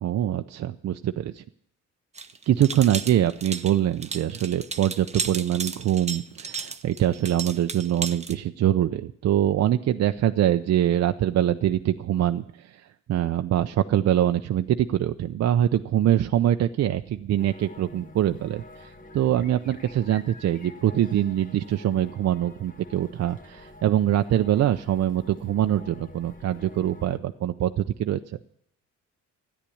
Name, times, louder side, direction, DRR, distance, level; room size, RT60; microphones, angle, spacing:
voice 1, 0.0-1.4 2.5-28.2, right 11 dB, 55° right, 8 dB, 0.6 m, -24 dB
sound 1, 2.1-8.3, right 5 dB, 20° right, 0.9 m, -34 dB
sound 2, 17.4-27.2, left 2 dB, 25° left, 1.5 m, -48 dB
13.5 x 9.8 x 8.5 m, 0.70 s
cardioid pair, 90°, 30 cm